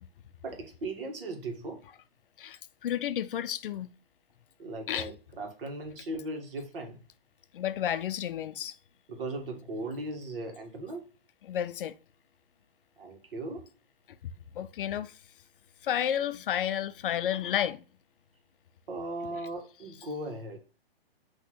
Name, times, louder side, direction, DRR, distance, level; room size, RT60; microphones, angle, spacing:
voice 1, 0.4-1.8 4.6-7.0 9.1-11.0 13.0-13.7 18.9-20.6, right 2 dB, 65° right, 1.6 m, -38 dB
voice 2, 2.4-3.9 4.9-5.1 7.5-8.7 11.5-12.0 14.2-15.1 15.8-17.8, left 10 dB, 60° left, 0.4 m, -31 dB
5.8 x 2.9 x 3.0 m
hypercardioid pair, 145°, 30 cm